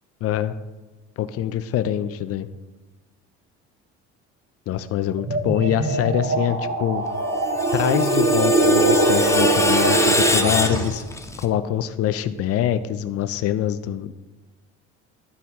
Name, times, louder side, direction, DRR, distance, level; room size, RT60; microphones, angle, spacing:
voice 1, 0.2-0.5 1.2-2.5 4.7-7.0 7.7-11.0 11.4-14.1, left 10 dB, 50° left, 11 dB, 0.6 m, -24 dB
sound 1, 5.2-11.0, right 2 dB, 45° right, 1.8 m, -22 dB
Screech, 7.2-11.5, left 2 dB, 10° left, 0.7 m, -24 dB
11.5 x 4.5 x 3.6 m, 1.2 s
supercardioid pair, 85°, 31 cm